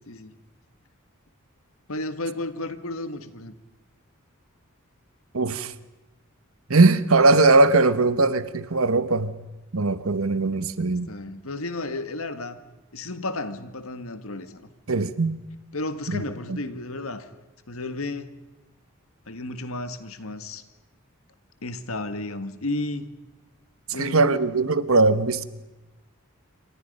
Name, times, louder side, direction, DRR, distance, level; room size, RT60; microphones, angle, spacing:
voice 1, 1.9-3.5 11.1-12.6 12.9-14.7 15.7-17.3 17.7-18.4 19.3-20.6 21.6-23.1 23.9-24.4, left 2 dB, 75° left, 1.7 m, -33 dB
voice 2, 5.3-5.7 6.7-9.3 9.7-11.1 14.9-15.4 16.1-16.2 16.5-16.6 23.9-25.5, right 3 dB, 70° right, 1.1 m, -20 dB
28.0 x 25.5 x 5.5 m
head